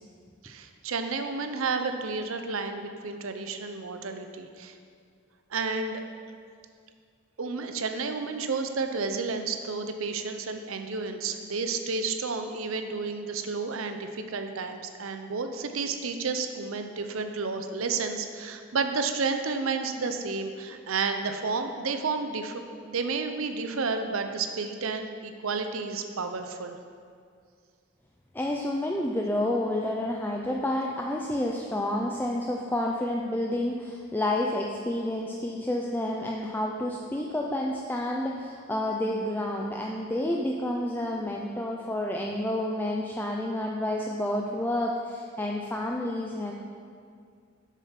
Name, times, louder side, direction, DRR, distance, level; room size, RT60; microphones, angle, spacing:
voice 1, 0.4-4.8 5.5-6.0 7.4-26.8, right 4 dB, 80° right, 7 dB, 0.7 m, -31 dB
voice 2, 28.3-46.5, left 1 dB, 10° left, -1 dB, 0.4 m, -29 dB
7.4 x 6.8 x 5.8 m, 2.2 s
head